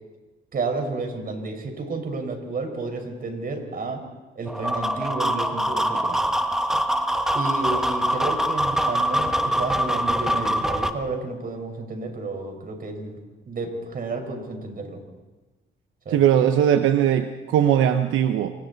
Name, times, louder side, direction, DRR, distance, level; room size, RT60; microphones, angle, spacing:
voice 1, 0.5-4.0 4.3-6.2 7.3-13.2 13.5-15.0 16.0-16.2, right 3 dB, 45° right, 4 dB, 5.0 m, -31 dB
sound 1, 4.5-10.9, equal, ahead, 1.5 m, -24 dB
voice 2, 16.1-18.5, right 10 dB, 85° right, 8 dB, 1.0 m, -19 dB
28.5 x 24.0 x 4.1 m, 1.2 s
cardioid pair, 90°, 20 cm